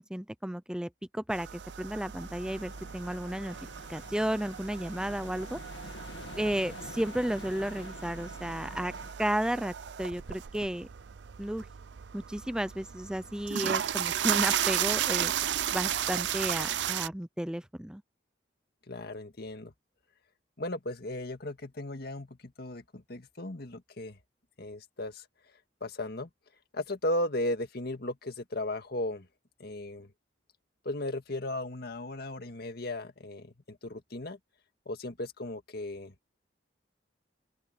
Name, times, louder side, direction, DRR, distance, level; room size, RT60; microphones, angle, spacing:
voice 1, 0.0-3.6 3.9-5.6 6.4-8.9 9.2-10.9 11.4-11.7 12.1-15.3 15.7-18.0, equal, 5° right, 0.5 m, -33 dB
sound 1, 1.3-17.1, right 10 dB, 75° right, 0.5 m, -34 dB
sound 2, 2.2-9.1, left 2 dB, 85° left, 1.9 m, -48 dB
voice 2, 18.9-19.7 20.6-24.2 24.6-25.2 25.8-26.3 26.7-29.3 29.6-30.1 30.9-34.4 34.9-36.1, left 1 dB, 60° left, 1.9 m, -36 dB
open air
head